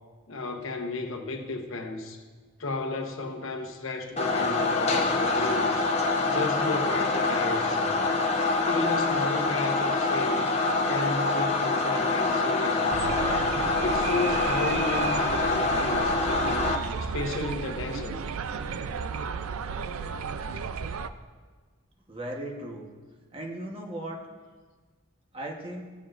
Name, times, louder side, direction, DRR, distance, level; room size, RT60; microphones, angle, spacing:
voice 1, 0.3-2.2 2.6-5.9 6.3-8.0 8.6-10.4 10.9-13.2 13.8-16.7 17.0-18.2, left 2 dB, 75° left, 3 dB, 1.0 m, -33 dB
sound 1, 4.2-16.7, left 3 dB, 30° left, 0.8 m, -25 dB
sound 2, 12.9-21.1, right 5 dB, 85° right, 0.4 m, -33 dB
voice 2, 22.1-22.9 23.3-24.2 25.3-25.8, right 1 dB, 25° right, 0 dB, 1.1 m, -36 dB
16.5 x 7.2 x 2.5 m, 1.4 s
head